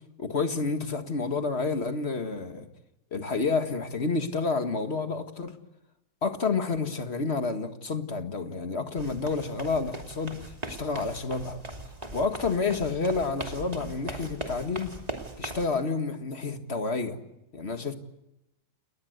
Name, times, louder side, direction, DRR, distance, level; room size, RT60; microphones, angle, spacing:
voice 1, 0.2-2.7 3.1-5.6 6.2-10.4 10.6-11.6 12.1-14.9 15.4-17.2 17.5-17.9, left 4 dB, 40° left, 7 dB, 2.0 m, -29 dB
sound 1, 9.0-15.7, right 2 dB, 20° right, 2.8 m, -40 dB
29.5 x 20.5 x 8.0 m, 0.88 s
omnidirectional pair, 1.8 m